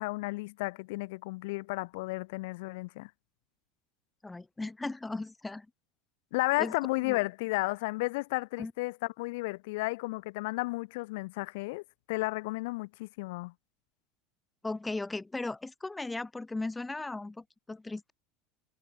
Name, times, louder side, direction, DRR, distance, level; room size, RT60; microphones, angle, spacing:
voice 1, 0.0-3.1 6.3-11.8 12.1-13.5, left 23 dB, 70° left, 5.6 m, -33 dB
voice 2, 4.2-5.7 6.6-6.7 7.0-7.2 8.6-8.7 14.6-18.1, left 2 dB, 10° left, 2.0 m, -37 dB
hypercardioid pair, 85°, 0 cm